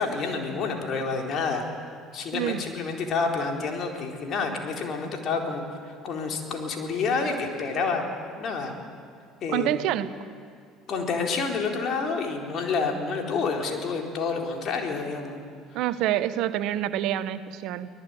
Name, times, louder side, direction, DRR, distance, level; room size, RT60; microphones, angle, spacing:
voice 1, 0.0-1.7 2.1-8.1 8.4-8.7 9.4-9.7 10.9-15.4, left 4 dB, 50° left, 2 dB, 4.2 m, -28 dB
voice 2, 9.5-10.1 15.7-17.9, right 12 dB, 65° right, 13 dB, 1.1 m, -27 dB
24.5 x 18.5 x 9.3 m, 2.2 s
hypercardioid pair, 65°, 0 cm